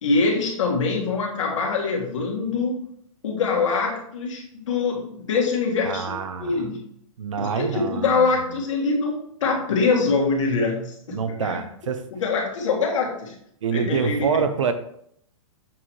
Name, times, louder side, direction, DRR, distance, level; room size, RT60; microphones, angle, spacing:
voice 1, 0.0-2.8 3.2-6.1 6.4-6.8 7.4-11.6 12.1-13.3 13.7-14.5, left 4 dB, 65° left, -1 dB, 1.8 m, -24 dB
voice 2, 5.8-6.5 7.2-8.3 11.1-12.0 13.6-14.7, right 6 dB, 65° right, 10 dB, 0.7 m, -26 dB
7.3 x 2.9 x 4.6 m, 0.69 s
hypercardioid pair, 180°, 18 cm